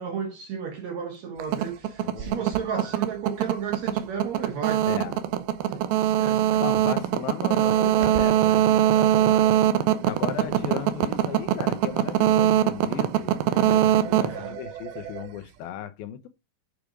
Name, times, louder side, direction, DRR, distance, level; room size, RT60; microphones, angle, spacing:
voice 1, 0.0-5.4 5.7-7.0 10.4-10.9 14.3-14.6, right 7 dB, 65° right, 1.8 m, -34 dB
sound 1, 1.4-15.3, right 11 dB, 90° right, 2.7 m, -22 dB
voice 2, 2.0-2.4 4.8-5.2 6.6-9.5 10.0-16.3, left 10 dB, 85° left, 2.8 m, -36 dB
8.8 x 4.8 x 5.0 m
omnidirectional pair, 4.2 m